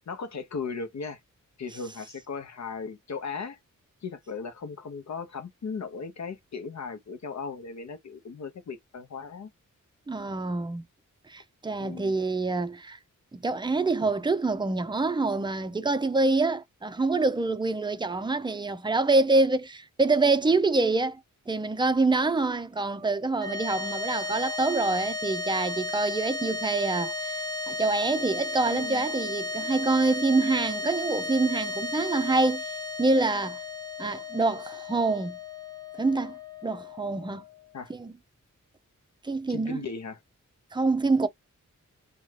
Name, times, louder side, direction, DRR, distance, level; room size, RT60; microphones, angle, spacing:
voice 1, 0.1-1.2 1.6-3.6 4.0-9.5 11.8-12.1 28.7-29.1 37.7-37.9 39.5-40.2, left 5 dB, 55° left, 0.8 m, -37 dB
voice 2, 10.1-10.8 11.3-13.0 13.3-21.2 21.5-32.6 33.0-33.6 34.0-35.4 36.0-37.4 37.9-38.1 39.2-39.8 40.7-41.3, right 3 dB, 15° right, 0.5 m, -26 dB
sound 1, 23.3-37.8, left 2 dB, 10° left, 0.8 m, -34 dB
2.7 x 2.3 x 3.2 m
cardioid pair, 75°, 32 cm